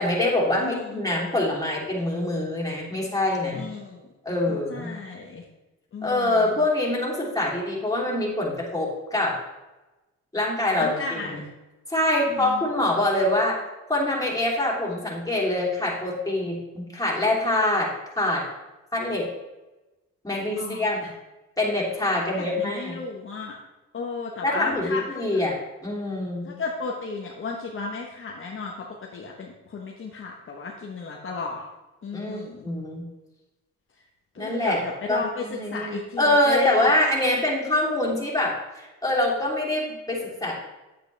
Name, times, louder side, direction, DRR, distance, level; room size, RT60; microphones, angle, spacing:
voice 1, 0.0-3.6 4.2-4.9 6.0-9.4 10.3-11.4 11.9-13.6 13.9-17.9 18.2-18.4 18.9-19.3 20.2-21.1 21.6-23.0 24.4-26.5 32.1-33.0 34.4-34.8 35.1-40.5, left 1 dB, 10° left, -4 dB, 3.3 m, -25 dB
voice 2, 0.6-0.9 3.5-4.0 4.5-5.4 5.9-6.6 10.8-11.4 12.3-12.6 20.6-20.9 22.1-23.6 23.9-25.4 26.4-28.9 29.1-31.6 32.0-32.7 34.3-36.9, left 4 dB, 40° left, -1 dB, 1.3 m, -34 dB
9.3 x 8.5 x 3.4 m, 1.1 s
cardioid pair, 90°, 30 cm